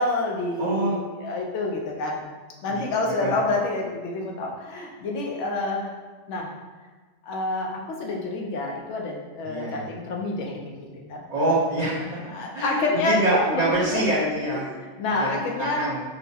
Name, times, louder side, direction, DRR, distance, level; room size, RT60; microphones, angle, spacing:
voice 1, 0.0-2.2 2.6-5.9 6.3-6.5 7.2-11.2 12.3-14.2 14.6-16.0, left 2 dB, 85° left, 0 dB, 1.0 m, -28 dB
voice 2, 0.6-1.0 2.6-2.9 3.2-3.4 9.4-9.9 11.3-12.2 12.5-14.6 15.1-16.0, right 1 dB, 40° right, -9 dB, 0.8 m, -25 dB
4.3 x 2.0 x 2.8 m, 1.3 s
omnidirectional pair, 1.2 m